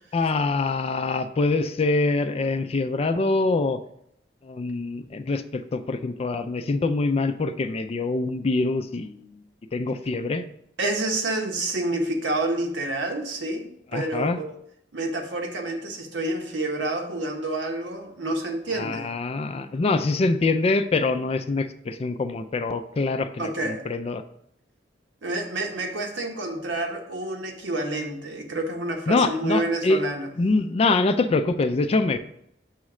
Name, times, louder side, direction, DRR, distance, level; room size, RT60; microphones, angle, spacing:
voice 1, 0.1-3.8 4.4-9.4 9.7-10.4 13.9-14.4 18.7-24.2 29.1-30.0 30.4-32.2, left 3 dB, 35° left, 10 dB, 0.3 m, -24 dB
voice 2, 10.8-13.7 13.9-14.5 14.9-19.1 23.4-23.8 25.2-30.3, right 2 dB, 85° right, 2 dB, 1.0 m, -28 dB
6.3 x 3.1 x 4.8 m, 0.73 s
head